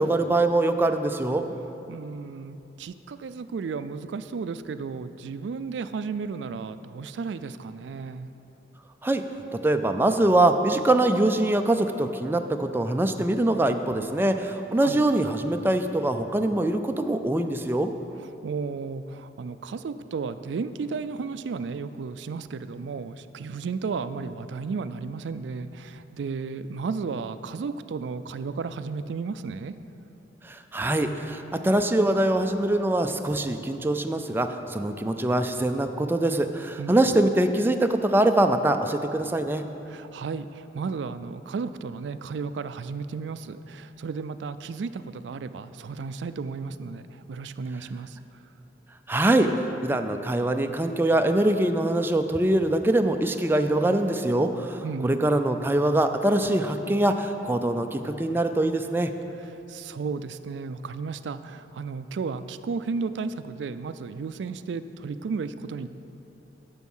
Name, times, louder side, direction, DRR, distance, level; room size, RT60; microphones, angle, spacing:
voice 1, 0.0-1.4 9.0-9.2 9.5-17.9 30.4-39.6 49.1-59.1, right 1 dB, 10° right, 6 dB, 0.4 m, -23 dB
voice 2, 1.9-8.3 14.8-15.0 18.4-29.7 36.8-36.9 39.9-48.2 54.8-55.3 59.7-65.9, right 4 dB, 85° right, 12 dB, 0.4 m, -33 dB
10.5 x 7.0 x 5.5 m, 2.9 s
head